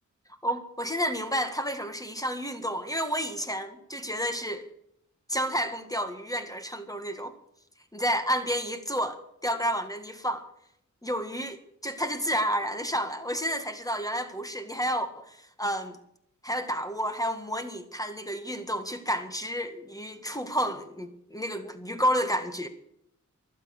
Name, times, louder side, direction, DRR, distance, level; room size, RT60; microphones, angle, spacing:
voice 1, 0.4-4.7 5.3-7.3 7.9-10.5 11.0-16.0 16.4-22.7, equal, 10° left, 1.8 m, -30 dB
23.5 x 8.5 x 6.7 m
cardioid pair, 45°, 31 cm